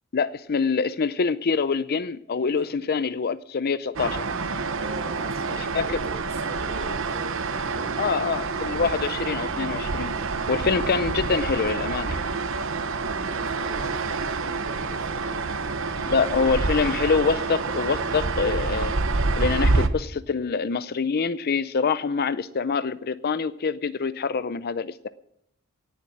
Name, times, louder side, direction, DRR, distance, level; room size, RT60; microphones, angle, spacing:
voice 1, 0.1-4.3 5.7-5.8 8.0-10.2 10.5-12.2 16.1-18.9 19.4-25.1, left 5 dB, 45° left, 15 dB, 0.5 m, -25 dB
sound 1, 4.0-19.9, right 3 dB, 65° right, 1.0 m, -27 dB
voice 2, 4.7-8.0 13.2-16.5, right 1 dB, 30° right, 2 dB, 4.6 m, -43 dB
18.0 x 7.3 x 8.6 m, 0.77 s
head